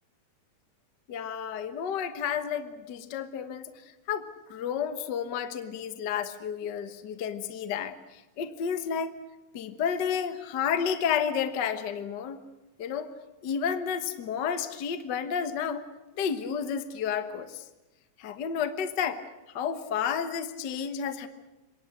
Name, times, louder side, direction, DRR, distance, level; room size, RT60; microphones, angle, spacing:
voice 1, 1.1-3.7 4.1-8.0 8.4-9.1 9.5-12.4 12.8-13.1 13.4-15.8 16.2-17.6 18.2-19.2 19.5-21.3, left 7 dB, 50° left, 9 dB, 1.3 m, -31 dB
27.0 x 23.0 x 6.6 m, 1.1 s
omnidirectional pair, 3.5 m